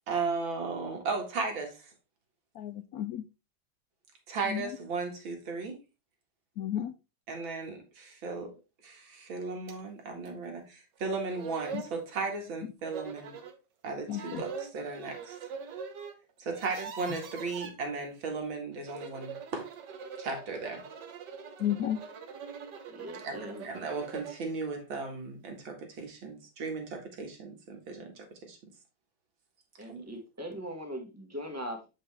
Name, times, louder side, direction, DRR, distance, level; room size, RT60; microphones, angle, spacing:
voice 1, 0.1-1.8 4.3-5.8 7.3-8.5 8.8-13.3 13.8-15.4 16.4-19.7 20.2-20.8 23.2-28.6 29.9-30.0, right 4 dB, 90° right, 2 dB, 2.5 m, -36 dB
voice 2, 2.6-3.2 4.5-4.7 6.6-6.9 11.7-11.8 14.1-14.4 21.6-22.0, left 11 dB, 75° left, 9 dB, 0.8 m, -32 dB
sound 1, 9.7-9.8 10.3-10.4 11.0-11.1 11.3-12.0 12.8-13.6 14.1-16.1 16.4-17.7 18.7-24.4, right 6 dB, 65° right, 1.6 m, -43 dB
voice 3, 22.9-23.7 29.8-31.8, equal, 10° right, 3 dB, 1.3 m, -40 dB
7.5 x 5.5 x 3.3 m, 0.28 s
omnidirectional pair, 2.1 m